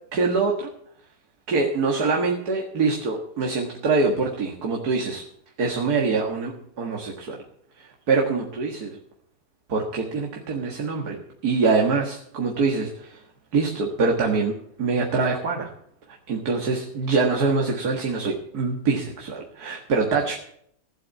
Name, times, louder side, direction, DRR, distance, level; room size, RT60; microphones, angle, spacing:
voice 1, 0.1-0.7 1.5-5.2 5.6-6.5 6.8-7.4 7.8-9.0 9.7-13.2 13.5-15.7 16.3-20.4, right 4 dB, 65° right, 1 dB, 2.2 m, -24 dB
16.5 x 7.6 x 8.5 m, 0.68 s
omnidirectional pair, 1.8 m